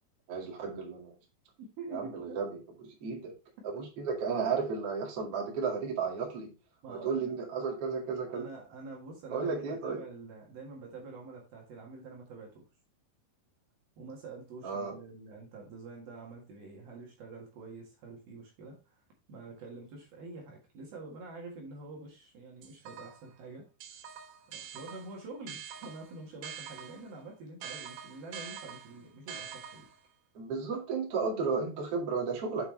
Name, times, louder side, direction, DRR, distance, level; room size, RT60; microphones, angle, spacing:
voice 1, 0.3-1.2 1.9-3.3 3.6-6.5 6.9-8.5 9.3-10.0 14.6-15.0 30.3-32.7, right 5 dB, 45° right, -2 dB, 2.2 m, -33 dB
voice 2, 1.6-2.4 6.8-7.4 8.3-12.6 14.0-23.7 23.9-24.0 24.5-29.9, right 3 dB, 60° right, -1 dB, 3.1 m, -46 dB
sound 1, 22.6-23.3 23.8-27.1 27.6-30.1, right 8 dB, 90° right, 3.9 m, -45 dB
7.9 x 5.5 x 3.2 m, 0.32 s
omnidirectional pair, 5.3 m